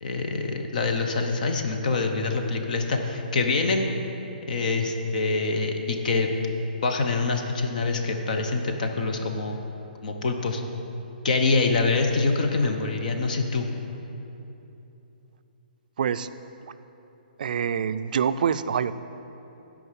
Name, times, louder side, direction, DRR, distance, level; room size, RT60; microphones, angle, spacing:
voice 1, 0.0-3.9 4.5-6.3 6.8-9.6 10.0-10.6 11.2-13.7, left 3 dB, 55° left, 4 dB, 0.9 m, -25 dB
voice 2, 16.0-16.3 17.4-18.9, right 7 dB, 60° right, 13 dB, 0.3 m, -25 dB
9.7 x 5.0 x 7.3 m, 3.0 s
hypercardioid pair, 160°, 5 cm